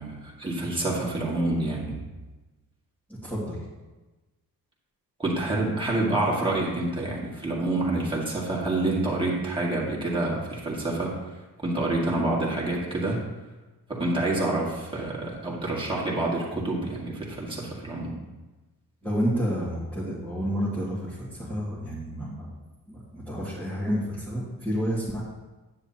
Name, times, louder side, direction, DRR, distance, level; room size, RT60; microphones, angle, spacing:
voice 1, 0.0-2.0 5.2-11.2 11.6-13.2 13.9-18.2, right 2 dB, 15° right, -4 dB, 1.9 m, -27 dB
voice 2, 3.1-3.7 19.0-22.5 22.9-25.2, equal, 5° left, -10 dB, 2.0 m, -30 dB
9.9 x 8.8 x 2.9 m, 1.2 s
wide cardioid pair, 140°, 38 cm